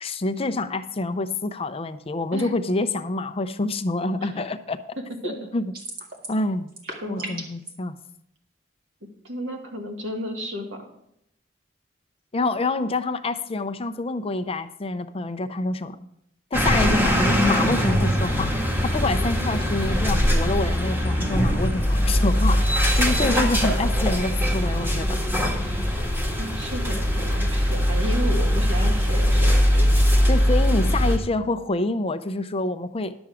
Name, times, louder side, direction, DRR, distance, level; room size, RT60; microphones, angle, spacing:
voice 1, 0.0-4.8 5.2-5.7 6.3-6.7 7.1-7.9 12.3-16.1 16.5-18.5 18.8-22.6 22.9-25.2 30.3-33.2, left 2 dB, 30° left, 9 dB, 0.6 m, -27 dB
sound 1, 5.7-6.4 6.7-7.7, right 2 dB, 50° right, 2.0 m, -35 dB
voice 2, 6.8-7.4 9.2-10.9 23.0-23.5 26.4-30.3, equal, 85° right, 1 dB, 2.2 m, -33 dB
sound 2, 16.5-31.2, equal, 10° right, 1.7 m, -21 dB
11.5 x 7.1 x 4.9 m, 0.77 s
head